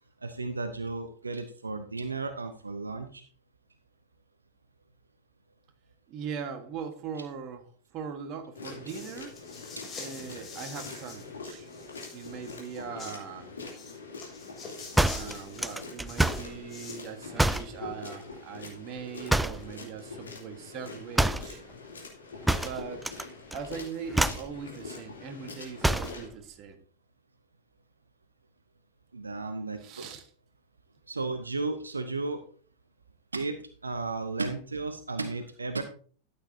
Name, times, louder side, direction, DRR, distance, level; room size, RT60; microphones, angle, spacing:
voice 1, 0.2-3.3 9.7-9.8 29.1-29.8 31.1-32.4 33.3-35.8, right 3 dB, 80° right, 9 dB, 0.8 m, -34 dB
voice 2, 6.1-7.7 7.9-9.3 10.0-11.7 12.1-13.5 15.1-21.6 22.6-23.1 23.5-26.8 29.8-30.3, right 6 dB, 35° right, 8 dB, 1.5 m, -40 dB
sound 1, 8.6-26.3, left 4 dB, 70° left, 3.0 m, -44 dB
sound 2, 8.9-11.3 11.6-13.2 13.7-17.1, left 4 dB, 25° left, 3.4 m, -45 dB
sound 3, 15.0-16.5 17.4-17.8 19.3-19.7 21.2-21.5 22.5-23.2 23.5-23.8 24.1-24.5 25.8-26.2, right 1 dB, 5° right, 0.4 m, -26 dB
13.0 x 8.8 x 2.8 m, 0.43 s
figure-of-eight pair, 90°, 0 cm